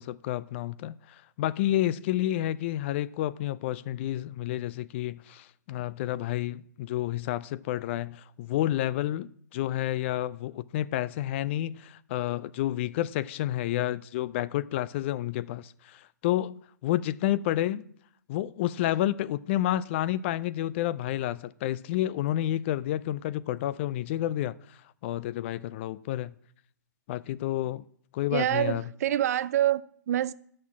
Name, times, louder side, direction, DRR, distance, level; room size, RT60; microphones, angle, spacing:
voice 1, 0.0-17.9 18.3-26.3 27.1-27.8 28.1-28.8, left 13 dB, 40° left, 0.4 m, -30 dB
voice 2, 28.3-30.3, right 12 dB, 55° right, 0.5 m, -26 dB
10.0 x 6.5 x 7.1 m
hypercardioid pair, 130°, 10 cm